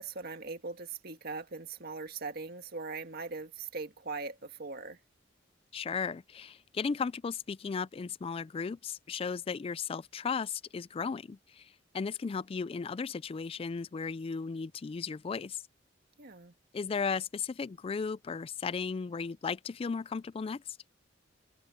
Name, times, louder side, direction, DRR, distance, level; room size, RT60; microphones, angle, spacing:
voice 1, 0.0-5.0 16.2-16.5, right 4 dB, 55° right, 1.8 m, -40 dB
voice 2, 5.7-15.6 16.7-20.6, left 5 dB, 30° left, 0.3 m, -35 dB
head